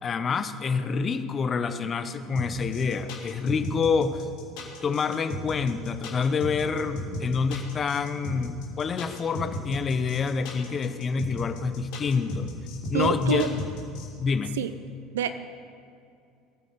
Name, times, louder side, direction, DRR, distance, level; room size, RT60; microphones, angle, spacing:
voice 1, 0.0-4.2 4.8-12.5 12.9-13.5 14.2-14.5, left 5 dB, 35° left, 10 dB, 1.0 m, -27 dB
sound 1, 2.3-14.0, left 1 dB, 60° left, 3.2 m, -35 dB
voice 2, 12.9-13.5 14.6-14.7 15.1-15.3, right 9 dB, 75° right, 12 dB, 0.6 m, -26 dB
19.5 x 9.1 x 6.9 m, 2.5 s
figure-of-eight pair, 70°, 0 cm